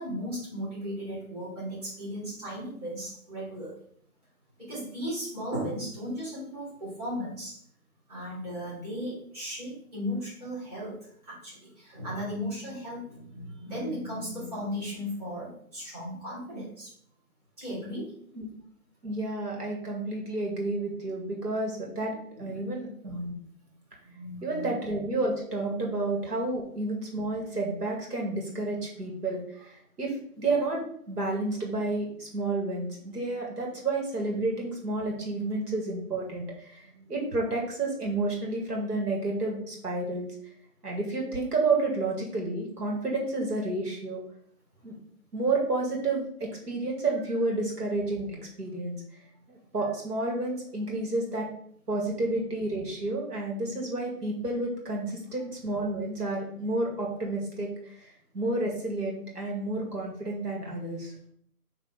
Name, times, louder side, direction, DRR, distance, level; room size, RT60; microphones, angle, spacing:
voice 1, 0.0-3.8 4.6-7.6 8.1-16.9 17.6-18.1 22.3-22.6 24.0-24.7 35.3-35.5 36.8-37.2 55.0-55.1, equal, 25° right, -10 dB, 2.7 m, -36 dB
voice 2, 19.0-23.4 24.4-40.3 40.8-44.2 44.8-44.9 45.3-49.0 49.5-51.5 51.9-61.1, right 2 dB, 80° right, -1 dB, 2.1 m, -30 dB
6.0 x 3.1 x 5.2 m, 0.64 s
hypercardioid pair, 175°, 47 cm